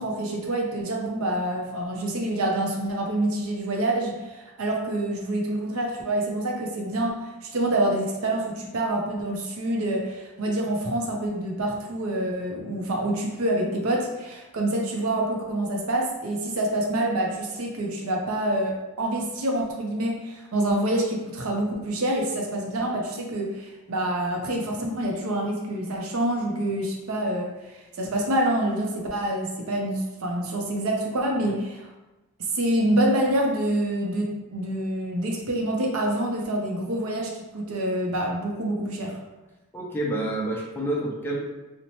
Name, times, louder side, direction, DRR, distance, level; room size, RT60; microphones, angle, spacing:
voice 1, 0.0-31.8 32.5-39.2, right 1 dB, 80° right, 0 dB, 0.6 m, -27 dB
voice 2, 39.7-41.4, right 1 dB, 10° left, -3 dB, 0.4 m, -28 dB
2.9 x 2.1 x 2.7 m, 1.1 s
head